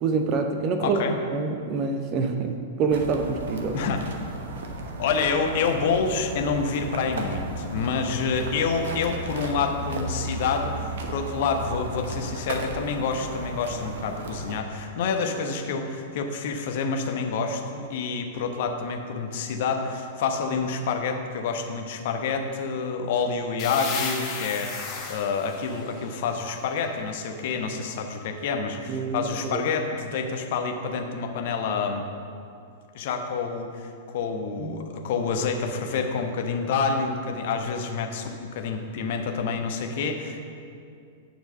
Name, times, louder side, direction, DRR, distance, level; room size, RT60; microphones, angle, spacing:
voice 1, 0.0-3.8 28.9-29.6 34.6-35.0, right 4 dB, 35° right, 5 dB, 0.7 m, -26 dB
voice 2, 0.8-1.2 3.7-4.0 5.0-32.1 32.9-40.4, left 5 dB, 50° left, 4 dB, 0.9 m, -28 dB
sound 1, 2.9-14.6, right 2 dB, 60° right, 1.0 m, -35 dB
sound 2, 23.6-27.2, left 5 dB, 35° left, 1.3 m, -35 dB
9.4 x 4.6 x 6.7 m, 2.4 s
figure-of-eight pair, 100°, 0 cm